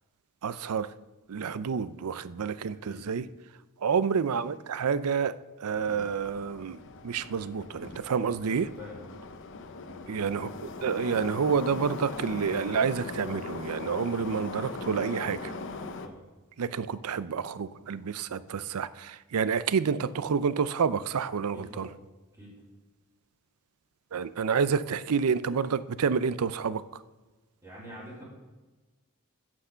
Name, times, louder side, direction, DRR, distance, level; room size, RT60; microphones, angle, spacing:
voice 1, 0.4-0.9 1.3-3.2 3.8-8.7 10.1-10.5 10.8-15.5 16.6-21.9 24.1-26.8, right 6 dB, 80° right, 16 dB, 0.5 m, -29 dB
voice 2, 2.7-3.0 8.8-9.1 16.0-16.1 21.5-21.9 22.3-22.5 27.6-28.2, left 1 dB, 15° right, -10 dB, 4.0 m, -45 dB
Subway metro underground, 5.7-16.1, left 3 dB, 60° left, 0.8 m, -40 dB
10.0 x 6.2 x 6.8 m, 1.2 s
head